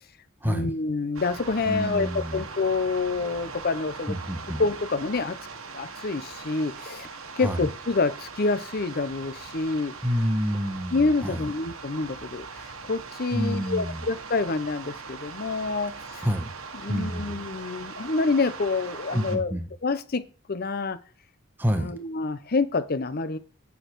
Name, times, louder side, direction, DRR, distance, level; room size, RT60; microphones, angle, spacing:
voice 1, 0.4-4.2 4.6-5.4 5.7-7.1 7.4-9.9 10.9-16.3 16.8-20.2 20.5-21.0 21.8-23.4, left 3 dB, 45° left, 14 dB, 0.7 m, -27 dB
sound 1, 1.1-19.4, right 4 dB, 75° right, 1.3 m, -40 dB
voice 2, 1.7-2.4 4.1-4.6 7.4-7.7 10.0-11.5 13.3-14.0 16.2-16.5 16.9-17.4 19.1-19.7 21.6-21.9, equal, 10° right, 5 dB, 1.2 m, -28 dB
9.4 x 6.6 x 4.6 m, 0.39 s
head